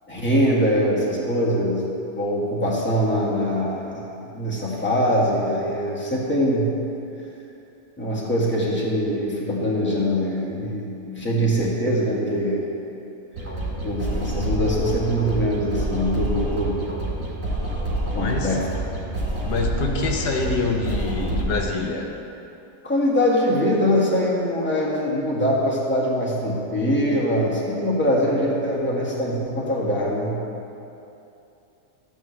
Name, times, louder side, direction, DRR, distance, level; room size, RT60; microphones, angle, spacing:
voice 1, 0.1-1.8 2.1-6.7 8.0-12.7 13.8-16.8 18.1-18.6 22.8-30.4, equal, 5° left, -6 dB, 1.6 m, -23 dB
sound 1, 13.3-21.6, right 1 dB, 50° right, 2.3 m, -27 dB
voice 2, 17.8-18.6 19.5-22.2, left 3 dB, 80° left, 1 dB, 1.5 m, -26 dB
13.5 x 8.6 x 3.2 m, 2.8 s
omnidirectional pair, 1.8 m